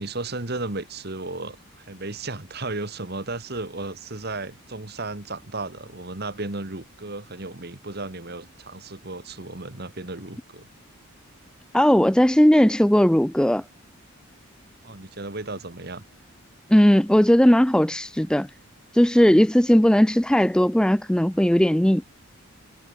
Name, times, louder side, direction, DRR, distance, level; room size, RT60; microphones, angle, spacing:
voice 1, 0.0-10.7 14.8-16.0, right 2 dB, 45° right, 1.7 m, -34 dB
voice 2, 11.7-13.6 16.7-18.5 18.9-22.0, equal, 5° left, 0.4 m, -18 dB
head